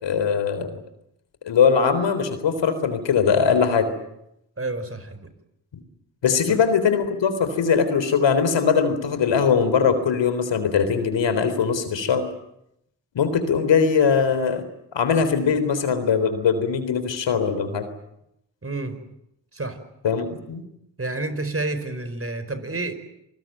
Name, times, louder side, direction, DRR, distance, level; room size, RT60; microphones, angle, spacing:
voice 1, 0.0-0.8 1.4-3.9 6.2-12.3 13.1-14.6 14.9-17.9 20.0-20.6, left 6 dB, 70° left, 11 dB, 3.9 m, -21 dB
voice 2, 4.6-5.3 6.5-6.6 18.6-19.0 19.5-19.8 21.0-22.9, right 2 dB, 30° right, 11 dB, 4.8 m, -29 dB
27.0 x 20.0 x 9.2 m, 0.80 s
supercardioid pair, 45°, 45 cm